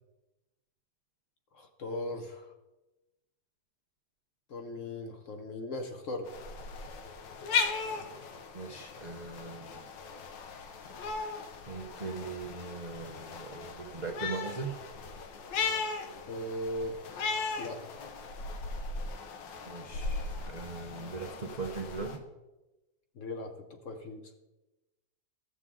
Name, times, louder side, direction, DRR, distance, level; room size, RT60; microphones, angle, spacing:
voice 1, 1.5-2.5 4.5-6.3 16.3-17.1 17.6-17.8 23.2-24.3, left 1 dB, 55° left, 5 dB, 1.0 m, -38 dB
sound 1, 6.2-22.2, left 4 dB, 85° left, 1.6 m, -37 dB
voice 2, 8.5-9.9 11.2-11.4 11.7-14.8 19.2-19.3 19.7-22.2, right 4 dB, 55° right, 1 dB, 0.4 m, -40 dB
13.5 x 6.8 x 3.7 m, 1.0 s
omnidirectional pair, 1.9 m